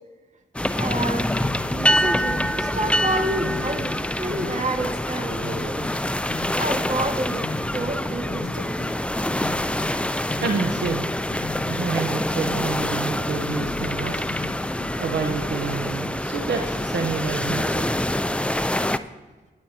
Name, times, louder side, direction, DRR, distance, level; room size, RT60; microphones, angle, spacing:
sound 1, 0.5-19.0, left 1 dB, 5° left, 0.5 m, -26 dB
voice 1, 0.7-1.3 1.7-5.8 6.3-7.5 7.7-8.7 13.8-13.9, right 1 dB, 40° right, 3 dB, 1.9 m, -29 dB
sound 2, 1.2-15.8, left 4 dB, 55° left, 0.8 m, -39 dB
voice 2, 10.4-11.1 11.7-14.2 15.0-17.9, right 5 dB, 70° right, 4 dB, 1.0 m, -28 dB
20.0 x 8.5 x 2.9 m, 1.3 s
supercardioid pair, 40°, 19 cm